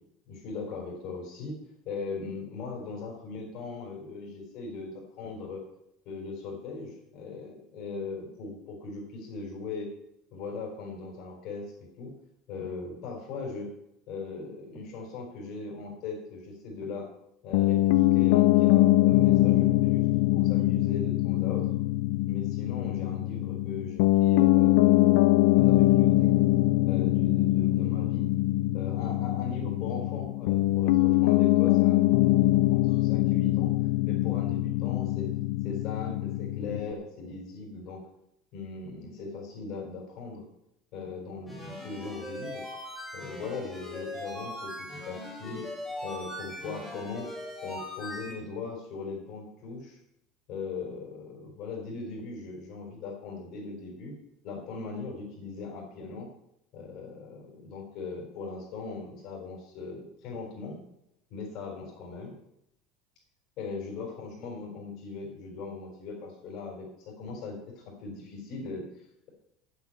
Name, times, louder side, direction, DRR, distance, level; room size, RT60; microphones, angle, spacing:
voice 1, 0.3-1.5 1.8-5.6 6.0-9.9 10.3-12.1 12.5-13.7 14.1-17.1 17.4-20.1 20.3-21.7 22.3-26.3 26.9-28.3 28.7-33.7 34.0-35.3 35.6-38.0 38.5-40.4 40.9-42.6 43.1-45.7 46.0-47.3 47.6-50.0 50.5-54.1 54.4-56.3 56.7-60.8 61.3-62.3 63.6-69.3, left 4 dB, 50° left, -1 dB, 4.2 m, -39 dB
Piano, 17.5-36.9, left 17 dB, 70° left, 0.3 m, -23 dB
sound 1, 41.5-48.3, left 1 dB, 5° left, 3.4 m, -40 dB
8.5 x 8.0 x 8.4 m, 0.80 s
supercardioid pair, 150°, 0 cm